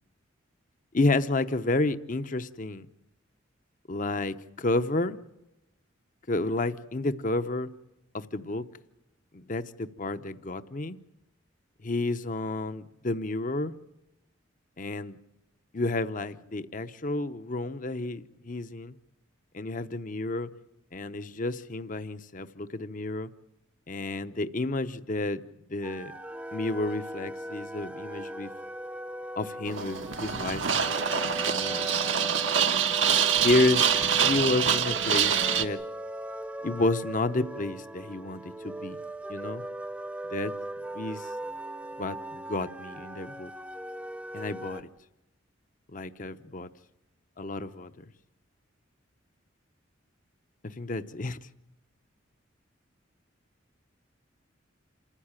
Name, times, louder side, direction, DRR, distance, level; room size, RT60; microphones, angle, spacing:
voice 1, 0.9-2.9 3.9-5.2 6.3-7.7 8.1-8.6 9.3-11.0 11.8-13.7 14.8-15.2 15.7-18.9 19.5-20.5 20.9-23.3 23.9-25.4 25.7-26.1 26.5-28.5 29.4-31.9 33.4-34.0 34.2-35.8 36.6-39.0 39.3-39.6 40.3-40.5 40.9-41.3 42.0-43.5 44.3-44.9 45.9-46.7 47.4-48.1 50.6-51.4, left 2 dB, 40° left, 0.8 m, -30 dB
sound 1, 25.8-44.8, right 1 dB, 5° right, 0.8 m, -39 dB
sound 2, 29.7-35.6, right 8 dB, 80° right, 1.3 m, -25 dB
27.5 x 14.5 x 8.9 m
head